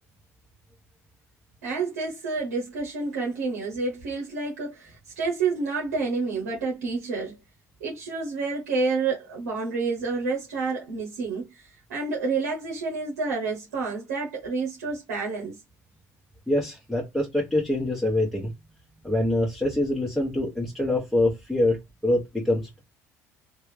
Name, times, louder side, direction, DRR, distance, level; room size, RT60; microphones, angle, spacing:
voice 1, 1.6-7.4 7.8-15.6, right 4 dB, 80° right, 0.9 m, -29 dB
voice 2, 16.5-18.5 19.0-22.8, left 1 dB, 5° left, 1.1 m, -25 dB
3.1 x 2.4 x 3.2 m
hypercardioid pair, 60°, 8 cm